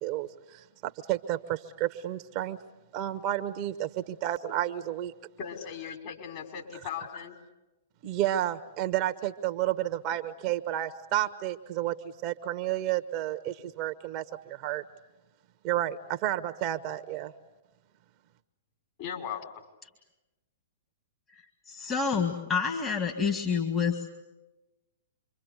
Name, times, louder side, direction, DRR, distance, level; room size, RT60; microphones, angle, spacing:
voice 1, 0.0-2.6 2.9-5.1 8.0-11.9 12.2-14.8 15.6-17.3, right 13 dB, 40° right, 9 dB, 1.2 m, -31 dB
voice 2, 5.4-7.4 19.0-19.4, left 8 dB, 45° left, 2 dB, 5.3 m, -38 dB
voice 3, 21.7-24.1, left 6 dB, 20° left, 3 dB, 2.2 m, -28 dB
27.0 x 24.0 x 8.2 m, 1.0 s
figure-of-eight pair, 110°, 0 cm